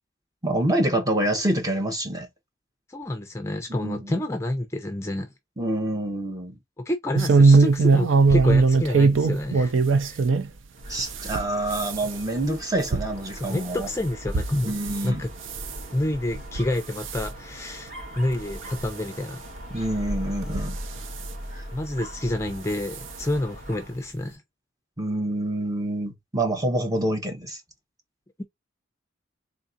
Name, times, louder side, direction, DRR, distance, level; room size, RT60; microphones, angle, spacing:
voice 1, 0.4-2.3 3.7-4.1 5.6-6.5 10.9-13.9 14.6-15.2 19.7-20.8 21.5-21.6 25.0-27.6, right 1 dB, 20° right, 0.8 m, -27 dB
voice 2, 2.9-5.3 6.8-9.7 10.0-10.2 13.3-14.7 15.0-15.3 15.9-19.4 21.7-24.4, left 1 dB, 15° left, 0.5 m, -29 dB
sound 1, 7.1-10.5 10.9-15.1 15.4-15.8 16.3-16.7 17.0-17.3 17.9-18.0 18.3-18.4 19.6-19.7 20.4-21.2 22.4-22.6 22.9-23.0 23.4-23.5, right 4 dB, 70° right, 0.5 m, -21 dB
Dog, 10.7-24.0, equal, 40° right, 2.1 m, -39 dB
3.7 x 3.6 x 2.6 m
head